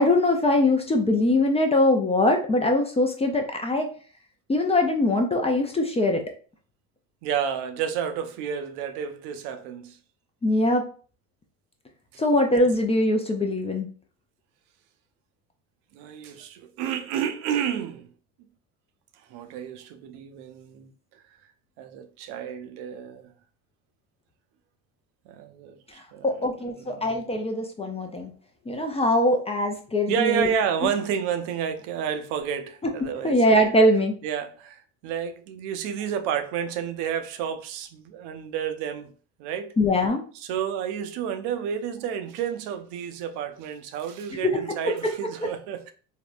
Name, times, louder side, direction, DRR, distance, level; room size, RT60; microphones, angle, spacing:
voice 1, 0.0-3.9 4.5-6.2 10.4-10.8 12.2-13.9 26.2-28.3 28.7-30.5 30.8-30.9 33.2-34.1 39.8-40.2 44.4-44.5, left 1 dB, 15° left, 0.4 m, -22 dB
voice 2, 7.2-10.0 15.9-18.1 19.3-20.9 21.8-23.2 25.3-26.3 26.8-27.2 30.1-33.4 34.2-39.1 39.4-39.8 40.3-45.9, right 8 dB, 70° right, 0.6 m, -30 dB
3.4 x 2.1 x 2.4 m
supercardioid pair, 80°, 41 cm